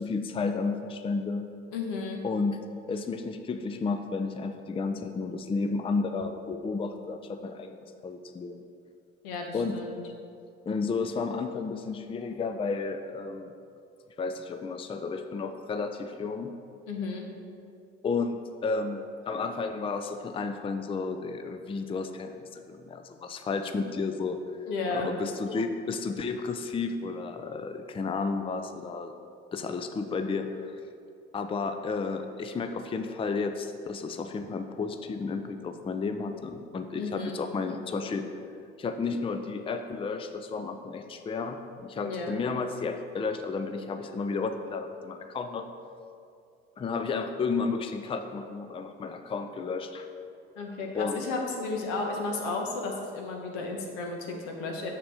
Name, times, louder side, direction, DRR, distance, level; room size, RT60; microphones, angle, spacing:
voice 1, 0.0-1.5 2.2-8.6 9.5-9.8 10.7-13.5 14.2-16.6 18.0-24.4 25.0-29.2 29.5-30.7 31.3-38.3 38.8-45.7 46.8-50.1 50.9-51.3, left 4 dB, 20° left, 7 dB, 0.4 m, -32 dB
voice 2, 1.7-2.2 9.2-10.0 16.9-17.3 24.7-25.1 37.0-37.4 42.0-42.4 50.6-54.9, left 3 dB, 80° left, 1 dB, 1.1 m, -33 dB
6.8 x 6.7 x 3.5 m, 2.5 s
hypercardioid pair, 60°, 29 cm